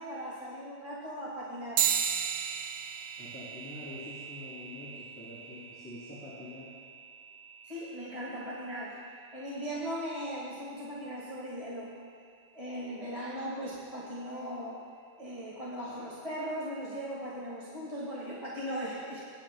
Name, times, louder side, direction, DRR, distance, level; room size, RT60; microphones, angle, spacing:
voice 1, 0.0-1.8 7.6-9.0 9.3-11.9 12.5-14.8 15.2-19.2, equal, 20° right, -6 dB, 1.6 m, -38 dB
sound 1, 1.8-11.6, right 8 dB, 80° right, 1.4 m, -37 dB
voice 2, 3.2-6.7, left 2 dB, 5° left, -12 dB, 3.0 m, -46 dB
21.0 x 10.0 x 2.2 m, 2.3 s
omnidirectional pair, 2.1 m